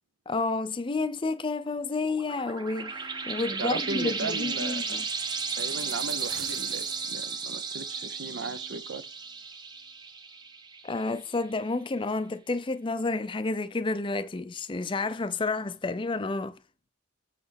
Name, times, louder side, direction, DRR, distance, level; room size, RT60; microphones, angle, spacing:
voice 1, 0.3-5.0 10.8-16.5, left 3 dB, 25° left, 0.4 m, -30 dB
sound 1, 2.0-11.2, right 5 dB, 20° right, 0.7 m, -34 dB
voice 2, 3.6-5.0 5.6-9.0, right 4 dB, 65° right, 0.6 m, -36 dB
sound 2, 6.2-7.3 7.7-7.8, right 8 dB, 85° right, 1.0 m, -45 dB
8.7 x 3.2 x 5.7 m
head